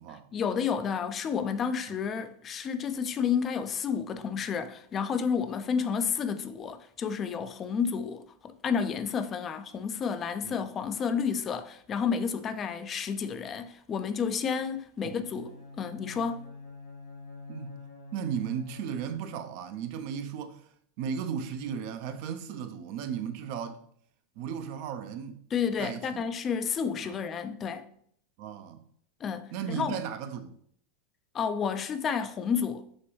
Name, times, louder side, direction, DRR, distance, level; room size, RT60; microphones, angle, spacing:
voice 1, 0.3-16.5 25.5-27.9 29.2-30.0 31.3-32.9, left 6 dB, 30° left, 0.3 m, -31 dB
Bowed string instrument, 15.1-19.3, left 3 dB, 90° left, 1.8 m, -46 dB
voice 2, 18.1-20.7 21.0-23.8 24.4-25.4 25.8-26.2 27.0-27.2 28.4-28.9 29.5-30.6, right 7 dB, 55° right, 0.4 m, -35 dB
6.2 x 2.3 x 3.0 m
hypercardioid pair, 90°, 0 cm